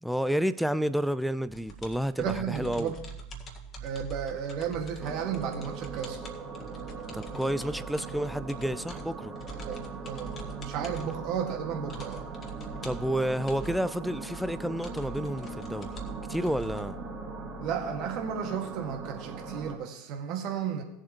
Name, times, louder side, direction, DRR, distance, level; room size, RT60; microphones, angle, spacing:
voice 1, 0.0-2.9 7.1-9.3 12.8-16.0 16.3-17.0, equal, ahead, 0.5 m, -30 dB
sound 1, 1.5-16.9, right 3 dB, 30° left, 1.8 m, -45 dB
voice 2, 2.2-2.9 3.8-6.2 9.6-12.3 17.6-20.8, right 7 dB, 45° right, 2.0 m, -33 dB
sound 2, 5.0-19.8, right 4 dB, 15° right, 2.9 m, -40 dB
18.5 x 7.4 x 3.1 m
figure-of-eight pair, 80°, 0 cm